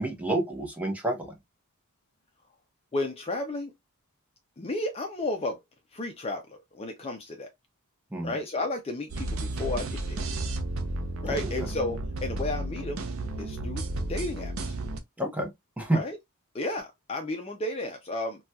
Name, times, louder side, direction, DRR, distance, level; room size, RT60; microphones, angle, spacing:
voice 1, 0.0-1.3 8.1-8.4 11.2-11.7 15.2-16.0, right 1 dB, 5° right, 0.7 m, -30 dB
voice 2, 2.9-3.7 4.6-5.6 5.9-7.5 8.2-10.2 11.2-13.1 13.4-13.8 14.1-14.7 15.9-16.2 16.5-18.4, left 2 dB, 25° left, 0.4 m, -33 dB
sound 1, 9.1-15.0, right 2 dB, 70° right, 0.6 m, -32 dB
4.0 x 2.2 x 2.2 m
head